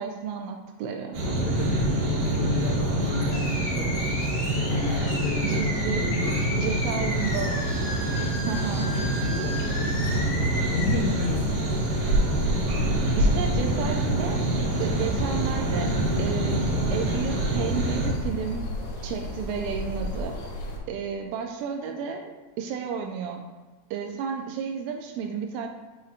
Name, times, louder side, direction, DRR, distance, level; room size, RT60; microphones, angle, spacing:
voice 1, 0.0-1.2 5.4-6.0 6.6-7.8 8.4-8.9 10.2-10.3 13.2-14.4 14.8-15.9 16.2-18.7 19.0-20.4 20.9-23.5 23.9-25.7, right 6 dB, 85° right, 3 dB, 2.8 m, -32 dB
sound 1, 1.1-18.1, right 1 dB, 65° right, 2.9 m, -26 dB
voice 2, 1.3-4.0 4.5-6.6 9.2-11.5, left 4 dB, 90° left, 1 dB, 3.6 m, -31 dB
Animal, 2.9-10.9, left 1 dB, 50° left, 2.5 m, -35 dB
sound 2, 7.1-20.8, left 1 dB, 70° left, 2.6 m, -36 dB
7.4 x 5.7 x 2.4 m, 1.2 s
omnidirectional pair, 5.8 m